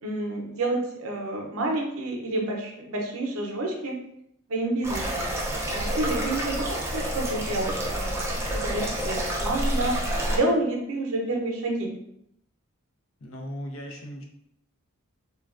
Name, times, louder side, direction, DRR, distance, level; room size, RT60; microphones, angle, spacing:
voice 1, 0.0-4.0 4.5-5.3 5.7-8.2 8.5-10.0 10.3-12.0, right 2 dB, 75° right, 2 dB, 0.6 m, -29 dB
sound 1, 4.8-10.4, right 1 dB, 10° right, 0.4 m, -28 dB
voice 2, 13.2-14.2, equal, 65° left, 1 dB, 0.5 m, -37 dB
3.2 x 2.2 x 2.4 m, 0.76 s
head